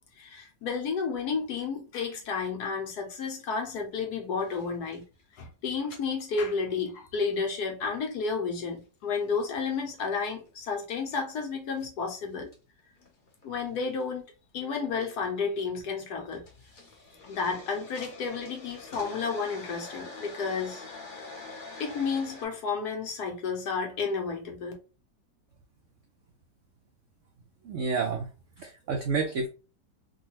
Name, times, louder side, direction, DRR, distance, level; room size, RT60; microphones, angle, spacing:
voice 1, 0.2-5.0 5.4-12.5 13.4-14.2 14.5-16.4 17.2-20.8 21.8-24.7, left 5 dB, 65° left, 1.4 m, -31 dB
sound 1, 4.4-5.2 5.9-6.0 7.2-7.4 8.0-8.1 8.6-9.4 9.8-10.5 11.8-11.9 12.5-12.6 13.0-14.0 15.1-15.4 15.9-16.0 16.3-22.5, left 3 dB, 40° left, 0.8 m, -45 dB
voice 2, 27.7-28.3 28.6-29.5, right 4 dB, 80° right, 0.7 m, -29 dB
3.7 x 2.3 x 2.9 m
omnidirectional pair, 1.9 m